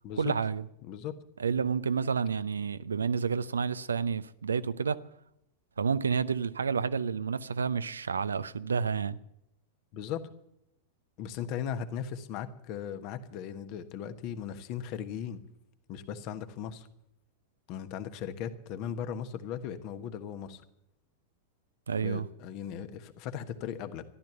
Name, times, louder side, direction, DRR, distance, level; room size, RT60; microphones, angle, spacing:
voice 1, 0.2-0.6 1.4-5.0 5.8-9.2 21.9-22.3, right 6 dB, 70° right, 0.6 m, -30 dB
voice 2, 0.8-1.1 9.9-10.2 11.2-15.4 15.9-16.9 17.7-20.6 22.0-24.0, left 8 dB, 40° left, 1.3 m, -38 dB
14.0 x 12.0 x 6.8 m
figure-of-eight pair, 90°, 0 cm